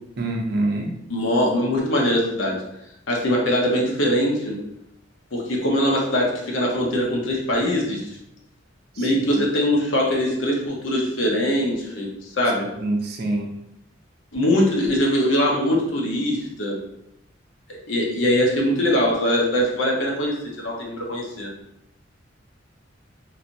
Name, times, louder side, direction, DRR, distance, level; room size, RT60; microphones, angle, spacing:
voice 1, 0.2-0.9 8.9-9.2 12.7-13.6, right 2 dB, 55° right, 1 dB, 0.6 m, -25 dB
voice 2, 1.1-2.6 3.1-4.6 5.3-8.2 9.0-12.7 14.3-16.8 17.9-21.5, equal, 85° left, -1 dB, 0.8 m, -22 dB
3.2 x 2.8 x 2.6 m, 0.82 s
head